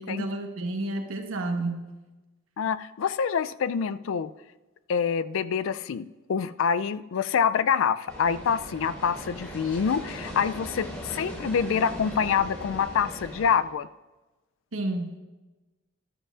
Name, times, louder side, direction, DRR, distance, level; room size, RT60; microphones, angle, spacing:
voice 1, 0.0-1.9 14.7-15.1, right 2 dB, 85° right, 4 dB, 1.2 m, -30 dB
voice 2, 2.6-4.3 4.9-13.9, left 7 dB, 70° left, 15 dB, 0.3 m, -26 dB
sound 1, 8.1-13.5, equal, 15° left, 3.0 m, -39 dB
12.5 x 12.5 x 2.5 m, 1.1 s
head